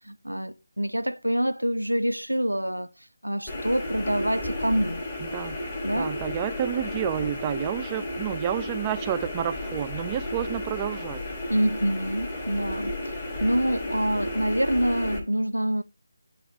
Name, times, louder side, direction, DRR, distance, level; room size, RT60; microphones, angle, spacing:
voice 1, 0.1-2.9 3.2-5.0 5.8-6.1 11.5-15.8, equal, 85° right, 0.4 m, -26 dB
sound 1, 3.5-15.2, left 1 dB, 25° left, 1.1 m, -33 dB
voice 2, 5.2-5.6 5.9-11.2, right 11 dB, 15° right, 0.3 m, -30 dB
9.2 x 3.1 x 4.7 m
figure-of-eight pair, 155°, 0 cm